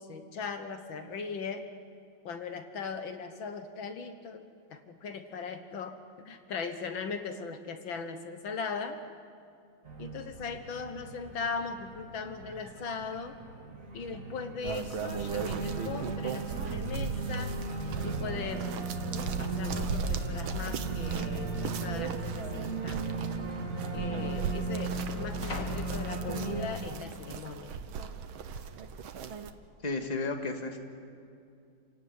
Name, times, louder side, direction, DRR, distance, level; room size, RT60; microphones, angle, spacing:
voice 1, 0.0-1.6 2.2-4.4 4.7-6.0 6.3-9.0 10.0-13.4 13.9-17.6 18.0-18.9 19.4-23.2 23.9-27.8, left 5 dB, 75° left, 8 dB, 2.0 m, -39 dB
Organ, 9.8-26.7, right 3 dB, 40° right, 2.4 m, -37 dB
sound 1, 14.6-29.5, right 6 dB, 85° right, 1.9 m, -38 dB
sound 2, 19.5-19.6 20.3-20.9 21.1-21.2 22.1-22.3 23.3-23.4 23.6-26.8 27.3-27.7, left 2 dB, 40° left, 2.6 m, -46 dB
voice 2, 29.8-30.8, left 3 dB, 20° left, 4 dB, 1.9 m, -33 dB
29.0 x 17.0 x 9.6 m, 2.4 s
omnidirectional pair, 2.2 m